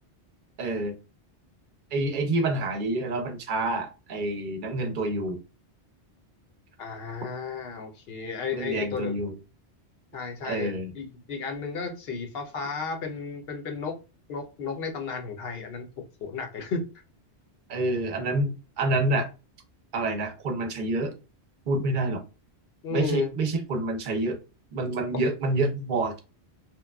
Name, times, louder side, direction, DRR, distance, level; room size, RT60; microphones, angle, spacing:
voice 1, 0.6-1.0 1.9-5.4 8.5-9.3 10.4-10.9 17.7-19.3 19.9-21.1 21.7-22.2 22.9-24.4 24.7-26.2, right 2 dB, 55° right, 0.6 m, -27 dB
voice 2, 6.8-9.2 10.1-13.9 14.3-15.9 16.2-16.8 22.8-23.3, left 5 dB, 65° left, 0.8 m, -33 dB
3.0 x 2.1 x 2.2 m
omnidirectional pair, 1.1 m